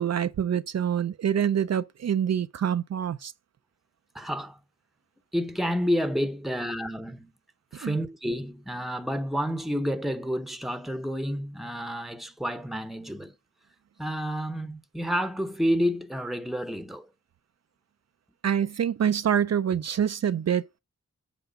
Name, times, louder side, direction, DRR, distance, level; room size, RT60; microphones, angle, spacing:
voice 1, 0.0-3.3 7.8-8.0 18.4-20.8, right 9 dB, 60° right, 0.5 m, -26 dB
voice 2, 4.1-4.6 5.3-7.3 7.7-13.3 14.0-17.1, equal, ahead, 0.9 m, -29 dB
8.2 x 4.7 x 5.2 m
wide cardioid pair, 80°, 29 cm